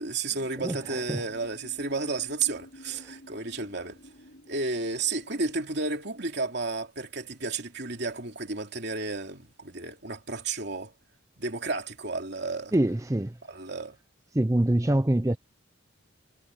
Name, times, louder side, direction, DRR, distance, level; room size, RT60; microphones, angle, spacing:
voice 1, 0.0-4.0 4.5-10.9 11.4-12.7 13.5-14.0, right 3 dB, 55° right, 3.0 m, -32 dB
sound 1, 0.6-5.6, left 1 dB, 60° left, 5.3 m, -52 dB
voice 2, 0.6-1.2 12.7-13.4 14.3-15.4, right 1 dB, 15° right, 0.6 m, -25 dB
head